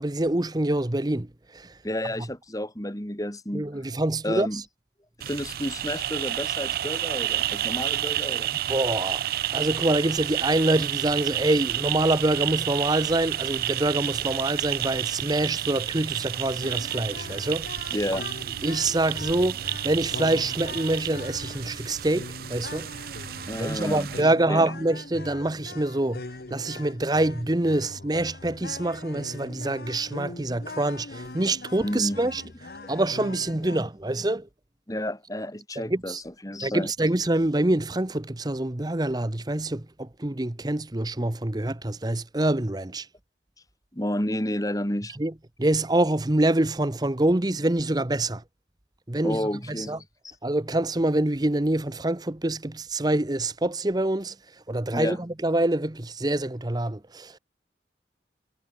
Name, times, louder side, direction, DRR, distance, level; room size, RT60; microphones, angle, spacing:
voice 1, 0.0-1.8 3.5-4.6 8.7-9.2 9.5-18.0 18.6-22.9 23.6-32.4 32.9-34.5 35.9-36.2 36.6-43.1 45.2-45.3 45.6-48.4 49.1-50.0 50.4-54.4 54.7-57.4, right 1 dB, 20° right, 0.9 m, -26 dB
voice 2, 1.8-3.7 4.2-4.6 5.2-8.6 17.9-18.3 23.5-24.1 24.5-24.7 31.8-32.3 34.9-36.1 36.4-36.9 43.9-45.1 49.2-50.0 54.9-55.2, left 1 dB, 20° left, 3.0 m, -30 dB
sound 1, 5.2-24.2, right 13 dB, 55° right, 0.4 m, -30 dB
sound 2, 16.6-33.8, left 2 dB, 55° left, 1.1 m, -41 dB
head